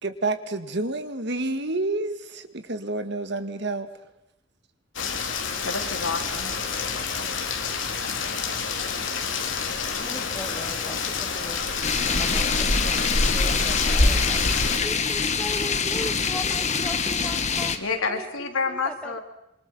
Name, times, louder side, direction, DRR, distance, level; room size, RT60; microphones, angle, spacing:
voice 1, 0.0-3.9, right 2 dB, 55° right, 9 dB, 2.0 m, -29 dB
Rain, 4.9-14.8, left 4 dB, 65° left, 3.2 m, -28 dB
voice 2, 5.6-6.5 17.8-19.2, left 4 dB, 80° left, 4 dB, 3.7 m, -28 dB
voice 3, 10.0-11.7 12.0-17.8 18.1-19.2, left 1 dB, 5° left, 8 dB, 1.2 m, -39 dB
sound 1, 11.8-17.8, left 4 dB, 35° left, 1.7 m, -24 dB
27.5 x 24.0 x 5.7 m, 0.87 s
head